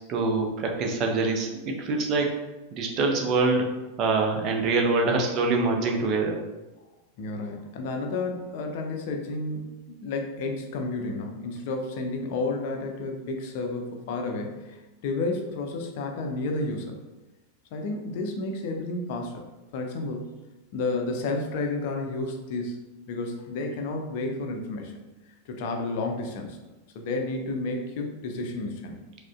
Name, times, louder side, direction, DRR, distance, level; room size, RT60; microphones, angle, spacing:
voice 1, 0.1-2.3 2.7-3.7 4.0-6.4, right 3 dB, 35° right, 2 dB, 0.6 m, -24 dB
voice 2, 7.2-17.0 17.7-19.5 19.7-20.3 20.7-22.8 23.1-26.6 26.9-29.0, left 2 dB, 50° left, 3 dB, 0.4 m, -31 dB
4.7 x 2.1 x 2.4 m, 1.1 s
figure-of-eight pair, 90°, 0 cm